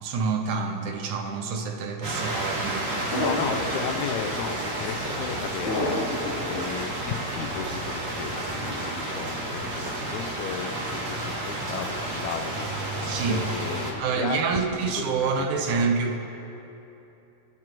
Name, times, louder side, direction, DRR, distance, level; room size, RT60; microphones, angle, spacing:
voice 1, 0.0-3.4 13.0-13.5 14.0-16.2, right 5 dB, 75° right, 4 dB, 2.2 m, -27 dB
sound 1, 2.0-13.9, right 1 dB, 40° right, 2.5 m, -31 dB
sound 2, 3.1-4.0 5.7-6.6, left 1 dB, 50° left, 1.2 m, -28 dB
voice 2, 3.2-14.4 15.4-15.8, left 7 dB, 75° left, 6 dB, 1.9 m, -35 dB
sound 3, 3.8-12.2, right 2 dB, 55° right, 1.3 m, -45 dB
22.0 x 12.0 x 3.0 m, 2.9 s
omnidirectional pair, 3.6 m